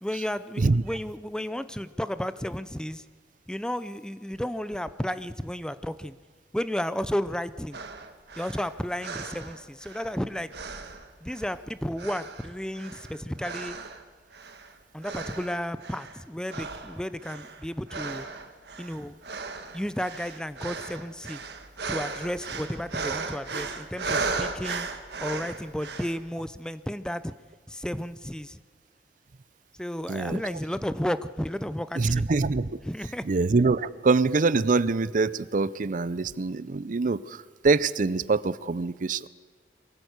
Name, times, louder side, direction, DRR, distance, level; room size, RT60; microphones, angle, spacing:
voice 1, 0.0-3.0 3.5-6.1 6.5-7.8 8.4-10.5 11.2-13.8 14.9-18.2 18.8-19.1 19.7-21.4 21.9-24.9 25.2-27.3 27.7-28.6 29.8-32.3 32.8-33.2, equal, 5° left, 13 dB, 0.5 m, -32 dB
sound 1, 7.7-10.2 10.5-11.6 12.0-14.0 14.3-14.7 15.0-16.2 16.5-26.2, right 4 dB, 70° right, 1.7 m, -36 dB
voice 2, 30.1-30.4 32.0-32.7 33.2-39.3, right 3 dB, 50° right, 17 dB, 0.5 m, -24 dB
23.0 x 15.5 x 8.1 m, 1.4 s
head